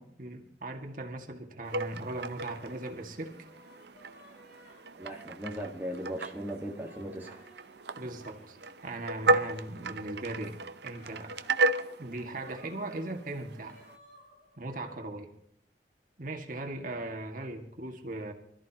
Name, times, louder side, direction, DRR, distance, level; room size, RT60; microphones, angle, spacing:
voice 1, 0.0-3.3 8.0-8.6 8.8-11.3 12.0-13.8 14.6-15.3 16.2-18.3, right 2 dB, 50° right, 3 dB, 2.0 m, -39 dB
sound 1, 1.7-14.0, right 2 dB, 70° right, 0.8 m, -34 dB
sound 2, 2.3-15.0, equal, 60° left, 6.7 m, -59 dB
voice 2, 5.0-7.4, equal, 10° right, -1 dB, 1.7 m, -38 dB
25.5 x 14.0 x 3.0 m, 0.70 s
head